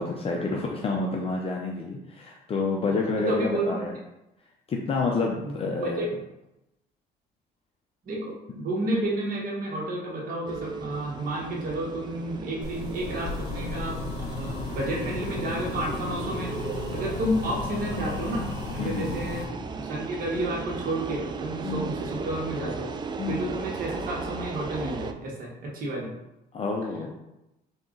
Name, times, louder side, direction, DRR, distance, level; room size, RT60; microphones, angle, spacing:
voice 1, 0.0-4.0 4.7-6.1 18.8-19.1 21.6-21.9 23.2-23.5 26.5-27.1, left 3 dB, 35° left, 0 dB, 0.5 m, -29 dB
voice 2, 3.3-3.7 5.4-5.5 5.8-6.1 8.1-16.5 16.9-18.5 18.7-19.5 19.8-22.9 23.2-26.1, right 1 dB, 55° right, -2 dB, 1.3 m, -31 dB
sound 1, 10.5-25.1, right 4 dB, 25° right, 0.3 m, -36 dB
sound 2, 12.6-19.4, left 4 dB, 85° left, 0.8 m, -35 dB
3.9 x 2.8 x 3.8 m, 0.90 s
cardioid pair, 110°, 17 cm